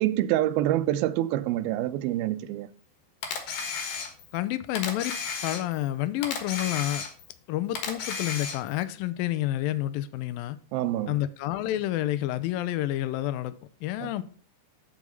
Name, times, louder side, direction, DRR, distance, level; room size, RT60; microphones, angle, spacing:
voice 1, 0.0-2.7 10.7-11.2 14.0-14.1, right 14 dB, 80° right, 2.4 m, -26 dB
Camera, 3.2-4.4 4.8-5.9 6.2-7.4 7.8-8.8, left 5 dB, 65° left, 2.8 m, -33 dB
voice 2, 4.3-5.2 5.4-7.1 7.5-10.6 11.1-13.6 13.8-14.2, left 14 dB, 80° left, 2.2 m, -29 dB
8.4 x 6.2 x 5.4 m
omnidirectional pair, 4.4 m